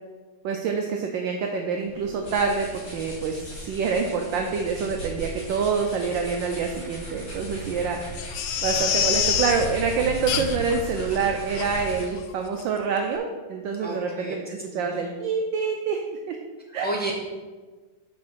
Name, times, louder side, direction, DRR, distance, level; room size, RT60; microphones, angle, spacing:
voice 1, 0.4-8.0 8.6-16.4 16.7-16.9, right 5 dB, 75° right, 3 dB, 1.2 m, -26 dB
sound 1, 1.8-12.3, right 1 dB, 35° left, 2.6 m, -36 dB
Crying sobbing, 8.2-9.7 10.3-10.7 11.1-11.2 11.6-11.7 12.2-12.3 12.6-12.7, left 9 dB, 75° left, 1.4 m, -26 dB
voice 2, 13.8-14.4 14.7-15.1 16.7-17.1, right 1 dB, 10° left, -3 dB, 0.7 m, -32 dB
6.0 x 4.3 x 6.1 m, 1.4 s
omnidirectional pair, 2.3 m